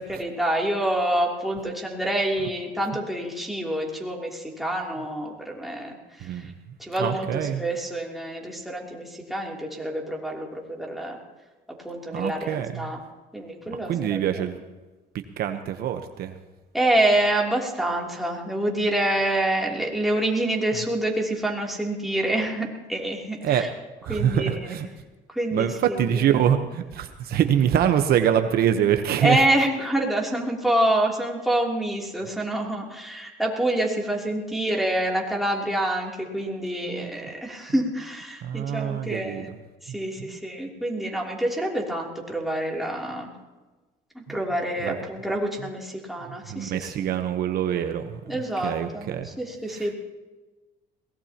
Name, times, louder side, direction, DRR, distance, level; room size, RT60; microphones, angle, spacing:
voice 1, 0.0-6.5 6.8-11.2 11.8-13.0 13.3-14.2 16.7-23.7 24.1-24.8 25.3-26.4 29.2-39.5 39.8-43.3 44.1-47.1 48.3-50.0, right 1 dB, ahead, -2 dB, 3.1 m, -27 dB
voice 2, 6.2-6.5 7.0-7.6 12.1-12.9 13.7-14.6 15.4-16.4 23.4-23.6 24.0-24.9 25.5-29.4 36.8-37.1 38.4-39.5 39.9-40.0 40.2-40.4 44.3-44.4 44.8-44.9 46.5-48.2 48.6-49.3 49.7-49.8, right 9 dB, 65° right, 7 dB, 1.0 m, -25 dB
22.0 x 18.5 x 3.0 m, 1.2 s
cardioid pair, 110°, 17 cm